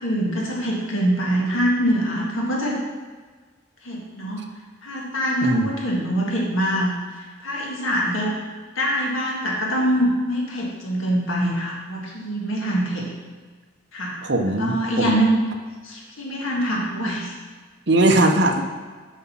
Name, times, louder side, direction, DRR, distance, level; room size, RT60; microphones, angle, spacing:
voice 1, 0.0-2.8 3.8-4.4 4.8-8.3 8.8-13.0 13.9-14.2 14.6-15.4 15.8-17.3, equal, 75° left, -3 dB, 1.8 m, -24 dB
voice 2, 5.4-5.7 14.2-15.2 17.9-18.6, right 2 dB, 55° right, 4 dB, 0.8 m, -19 dB
7.6 x 5.1 x 5.9 m, 1.4 s
head